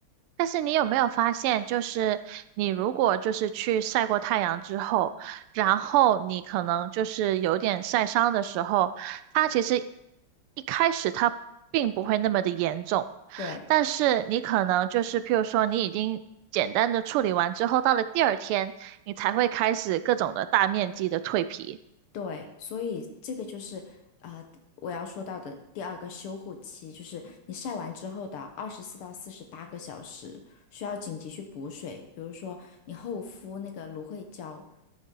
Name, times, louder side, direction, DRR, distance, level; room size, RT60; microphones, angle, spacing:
voice 1, 0.4-9.8 10.7-11.3 11.7-13.0 13.3-16.2 16.5-21.8, right 12 dB, 85° right, 13 dB, 1.5 m, -26 dB
voice 2, 22.1-24.5 24.8-34.6, left 5 dB, 85° left, 5 dB, 2.1 m, -38 dB
12.5 x 6.5 x 3.8 m, 0.84 s
omnidirectional pair, 2.4 m